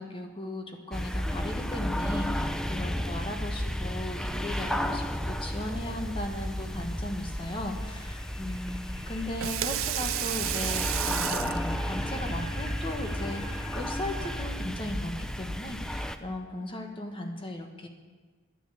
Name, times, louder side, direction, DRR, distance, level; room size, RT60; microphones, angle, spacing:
voice 1, 0.0-17.9, left 1 dB, 25° left, 4 dB, 1.3 m, -37 dB
sound 1, 0.9-16.2, equal, 5° left, 0.5 m, -33 dB
sound 2, 6.2-14.4, left 1 dB, 70° left, 5.0 m, -47 dB
Water tap faucet / Sink (filling or washing), 9.2-14.7, right 13 dB, 75° right, 0.4 m, -34 dB
10.5 x 10.0 x 7.0 m, 1.4 s
head